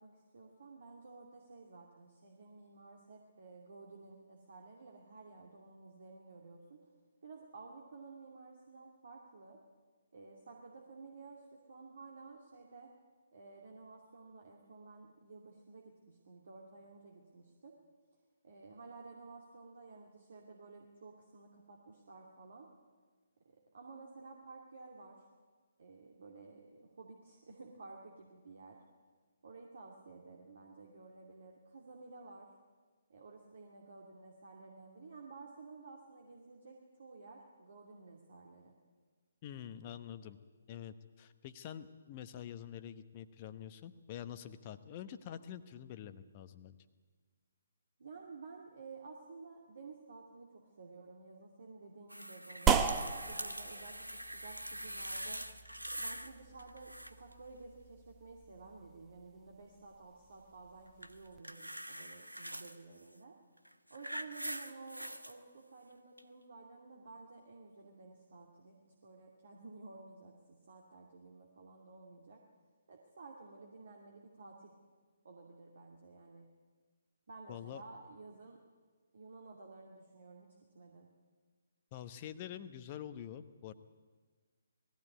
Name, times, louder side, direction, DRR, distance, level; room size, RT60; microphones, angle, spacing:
voice 1, 0.0-6.8 7.2-9.6 10.1-12.9 13.3-17.8 18.4-22.7 23.4-25.2 25.8-28.8 29.4-32.5 33.1-38.8 48.0-55.4 55.9-63.4 63.9-72.4 72.9-74.7 75.2-76.5 77.3-78.6 79.1-81.1, right 3 dB, 55° right, 0 dB, 2.6 m, -53 dB
voice 2, 39.4-40.4 40.7-46.8 77.5-77.8 81.9-83.7, left 10 dB, 30° left, 10 dB, 1.0 m, -46 dB
sound 1, 52.1-56.3 56.6-57.3 61.0-62.8 63.6-65.3 66.2-66.3, right 1 dB, 85° right, 1.2 m, -43 dB
sound 2, 52.7-61.4, right 6 dB, 15° right, 1.0 m, -38 dB
19.5 x 15.5 x 9.4 m, 1.5 s
figure-of-eight pair, 135°, 0 cm